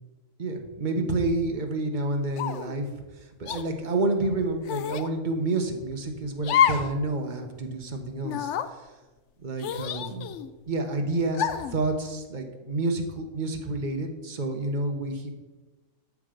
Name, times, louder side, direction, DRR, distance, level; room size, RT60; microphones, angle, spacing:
voice 1, 0.4-2.9 3.4-8.9 9.4-10.3 10.7-15.3, right 2 dB, 35° right, 4 dB, 1.2 m, -29 dB
sound 1, 2.4-2.8 3.5-3.6 4.7-5.1 6.4-6.9 7.3-7.4 8.2-8.7 9.6-10.5 11.3-11.8, left 9 dB, 65° left, 0.8 m, -27 dB
12.0 x 6.1 x 5.1 m, 1.2 s
omnidirectional pair, 1.5 m